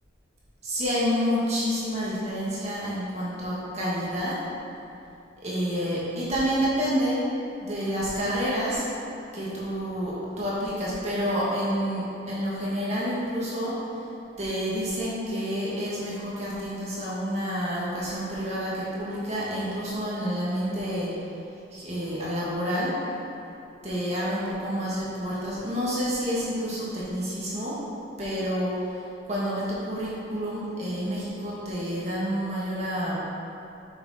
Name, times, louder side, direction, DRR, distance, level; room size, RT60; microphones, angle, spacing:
voice 1, 0.6-4.4 5.4-7.3 7.6-8.9 9.3-13.8 14.4-21.1 21.7-23.0 23.8-27.8 28.2-28.8 29.3-33.2, equal, 35° right, -8 dB, 2.1 m, -29 dB
8.7 x 6.3 x 4.3 m, 2.8 s
head